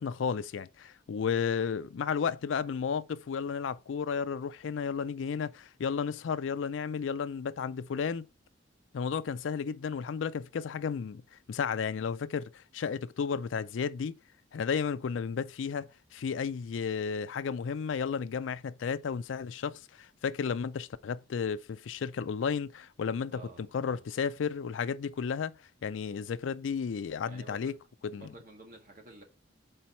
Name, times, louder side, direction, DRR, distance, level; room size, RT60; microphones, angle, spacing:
voice 1, 0.0-8.3 8.9-11.2 11.5-14.2 14.5-25.5 25.8-27.7 28.0-28.3, left 6 dB, 80° left, 0.4 m, -33 dB
voice 2, 23.3-24.1 27.3-27.7 28.1-29.2, right 3 dB, 45° right, 1.7 m, -51 dB
4.4 x 4.2 x 5.4 m
head